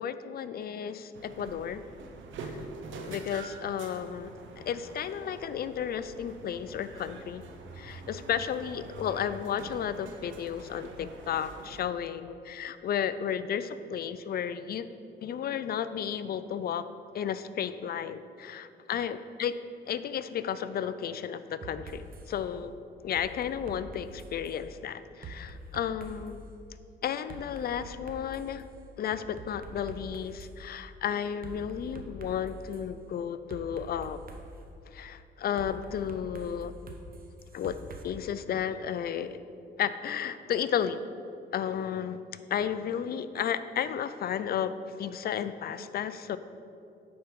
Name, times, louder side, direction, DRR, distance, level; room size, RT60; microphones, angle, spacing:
voice 1, 0.0-1.8 2.4-2.5 3.0-4.3 4.6-7.4 7.8-14.9 15.2-16.8 17.1-19.5 19.9-22.7 23.0-26.4 27.0-28.7 29.0-34.2 34.9-36.7 37.5-39.4 39.8-41.0 41.5-42.2 42.5-44.7 45.0-46.4, left 8 dB, 50° left, 13 dB, 0.4 m, -33 dB
sound 1, 1.1-11.8, right 3 dB, 75° right, 0.8 m, -45 dB
sound 2, 21.6-22.3 23.1-24.6 25.2-26.4 27.3-28.6 29.1-30.5 31.4-32.8 33.5-34.7 35.6-38.0, right 2 dB, 45° right, 0.9 m, -45 dB
9.4 x 4.4 x 5.3 m, 2.6 s
cardioid pair, 90°, 20 cm